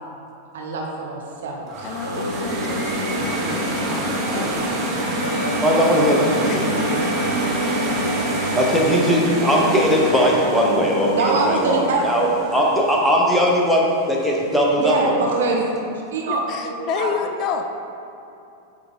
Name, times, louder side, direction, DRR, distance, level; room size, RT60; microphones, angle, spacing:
voice 1, 0.5-1.9 11.1-12.7 14.8-15.7 16.1-17.1, right 3 dB, 60° right, -1 dB, 1.0 m, -24 dB
sound 1, 1.7-12.7, right 1 dB, 30° right, 1.0 m, -27 dB
voice 2, 1.8-4.9 6.4-6.9 16.2-17.6, left 6 dB, 35° left, 5 dB, 0.3 m, -30 dB
Singing, 1.8-11.6, right 1 dB, 85° right, 0.4 m, -29 dB
voice 3, 5.6-6.7 8.5-15.1, equal, ahead, -3 dB, 0.9 m, -19 dB
7.9 x 3.4 x 3.7 m, 2.7 s
figure-of-eight pair, 90°, 0 cm